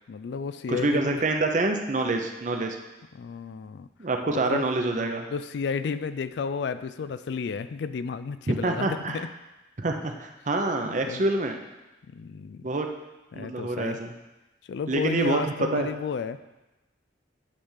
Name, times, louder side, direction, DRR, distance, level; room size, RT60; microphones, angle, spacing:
voice 1, 0.1-1.2 3.1-3.9 4.3-4.7 5.3-9.3 10.8-11.2 12.1-12.6 13.3-14.0 14.7-16.4, left 5 dB, 65° left, 13 dB, 0.3 m, -32 dB
voice 2, 0.7-2.8 4.0-5.2 8.5-9.2 9.8-11.6 12.6-12.9 13.3-14.1 14.9-15.9, right 2 dB, 40° right, 4 dB, 0.7 m, -26 dB
9.8 x 3.5 x 5.6 m, 1.0 s
head